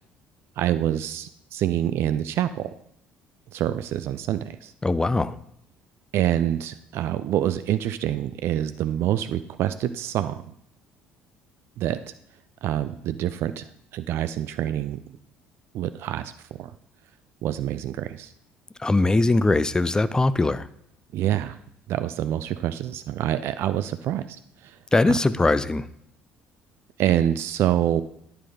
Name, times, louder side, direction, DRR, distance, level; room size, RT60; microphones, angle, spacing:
voice 1, 0.6-2.7 3.5-4.7 6.1-10.4 11.8-12.0 12.6-13.6 13.9-15.0 15.7-16.3 16.6-16.7 17.4-18.3 21.1-21.6 21.9-24.2 25.1-25.2 27.0-28.0, right 11 dB, 50° right, 12 dB, 0.4 m, -26 dB
voice 2, 4.8-5.4 18.8-20.7 24.9-25.9, left 2 dB, 15° left, 15 dB, 0.4 m, -21 dB
9.8 x 5.6 x 3.6 m, 0.71 s
figure-of-eight pair, 55°, 5 cm